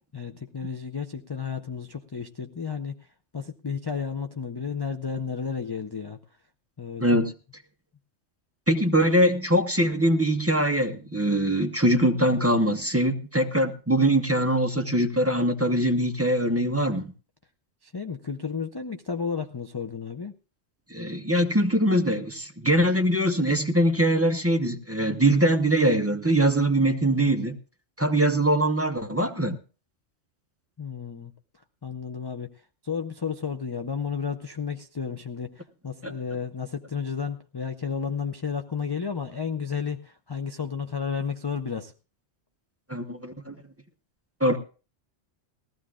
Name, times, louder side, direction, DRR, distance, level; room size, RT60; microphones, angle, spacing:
voice 1, 0.1-3.0 3.3-6.2 6.8-7.0 17.8-20.4 30.8-31.3 31.8-32.5 32.8-41.9, left 6 dB, 35° left, 6 dB, 0.4 m, -32 dB
voice 2, 7.0-7.3 8.7-17.1 20.9-27.5 28.0-29.6 36.0-36.1 42.9-43.6 44.4-44.6, right 1 dB, 15° right, 5 dB, 0.8 m, -22 dB
19.5 x 14.5 x 2.4 m, 0.36 s
omnidirectional pair, 1.3 m